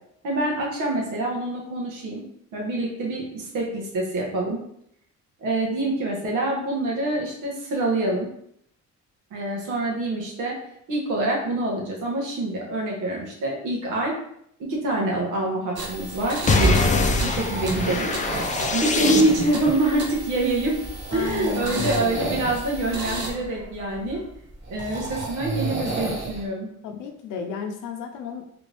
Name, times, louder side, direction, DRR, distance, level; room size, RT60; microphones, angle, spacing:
voice 1, 0.2-2.2 2.5-4.6 5.4-8.3 9.3-10.5 10.9-14.1 14.6-16.8 17.2-18.1 18.7-20.8 21.1-24.2 24.7-26.7, right 2 dB, 85° right, -2 dB, 1.3 m, -26 dB
sound 1, 15.8-23.3, right 2 dB, 55° right, 1.0 m, -35 dB
sound 2, 16.5-19.7, left 2 dB, 25° left, 0.4 m, -23 dB
sound 3, 17.1-26.4, right 3 dB, 40° right, 1.3 m, -33 dB
voice 2, 21.1-22.3 26.8-28.5, left 6 dB, 85° left, 5 dB, 0.6 m, -33 dB
3.3 x 2.6 x 3.3 m, 0.71 s
cardioid pair, 90°, 30 cm